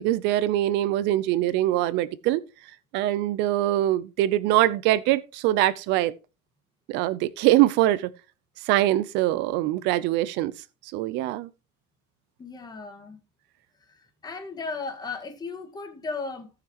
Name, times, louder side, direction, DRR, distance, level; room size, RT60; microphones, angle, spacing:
voice 1, 0.0-2.4 2.9-6.1 6.9-8.1 8.6-10.5 10.8-11.5, right 14 dB, 70° right, 0.6 m, -23 dB
voice 2, 12.4-13.2 13.9-16.5, left 4 dB, 20° left, 1.6 m, -36 dB
17.5 x 5.9 x 3.0 m
cardioid pair, 145°, 18 cm